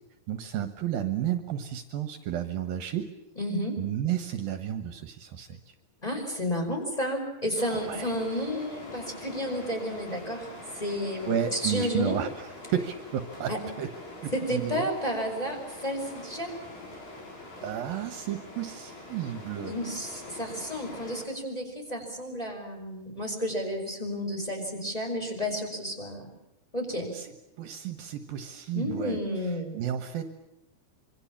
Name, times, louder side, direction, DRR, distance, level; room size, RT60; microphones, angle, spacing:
voice 1, 0.3-3.1 3.8-5.7 7.7-8.1 11.3-13.5 13.8-13.9 14.2-14.9 17.6-19.7 27.1-27.3 27.6-29.2 29.7-30.2, right 9 dB, 70° right, 8 dB, 2.9 m, -32 dB
voice 2, 3.4-3.8 6.0-10.5 10.7-12.2 13.5-13.6 14.3-16.5 19.7-26.3 26.7-27.1 28.7-29.7, equal, 10° left, 0 dB, 5.3 m, -31 dB
sound 1, 7.6-21.2, left 2 dB, 65° left, 7.6 m, -44 dB
26.0 x 25.0 x 7.3 m, 0.90 s
omnidirectional pair, 4.5 m